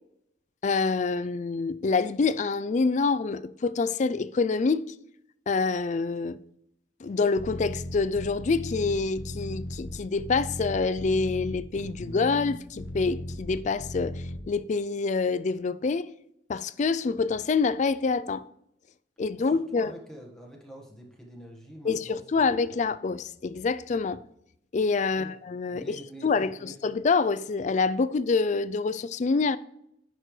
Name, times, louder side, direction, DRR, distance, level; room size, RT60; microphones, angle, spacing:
voice 1, 0.6-4.9 5.5-6.4 7.0-16.1 16.5-18.4 19.2-19.9 21.8-24.2 24.7-26.0 26.2-29.6, left 4 dB, 40° left, 0.3 m, -26 dB
sound 1, 7.4-14.4, left 1 dB, 85° left, 1.0 m, -36 dB
voice 2, 19.4-22.7 23.9-24.0 25.1-25.3 25.6-26.8, equal, 5° left, 1.4 m, -47 dB
10.0 x 6.6 x 3.2 m
head